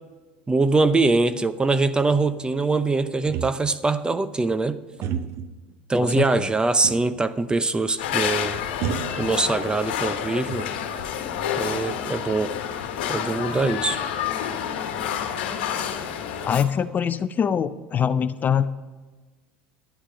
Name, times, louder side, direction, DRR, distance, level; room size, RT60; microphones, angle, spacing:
voice 1, 0.5-4.8 5.9-8.6 9.2-10.7 11.6-12.6 13.1-14.0, right 3 dB, 15° right, 13 dB, 0.7 m, -23 dB
sound 1, 3.2-3.9 5.0-5.6 6.8-7.2 7.6-7.7 8.8-9.8 10.2-11.0, right 8 dB, 55° right, 0.7 m, -32 dB
voice 2, 6.0-6.5 16.5-18.7, left 8 dB, 35° left, 13 dB, 0.5 m, -23 dB
sound 2, 8.0-16.6, left 9 dB, 75° left, 1.3 m, -29 dB
11.0 x 8.8 x 5.1 m, 1.3 s
hypercardioid pair, 80°, 5 cm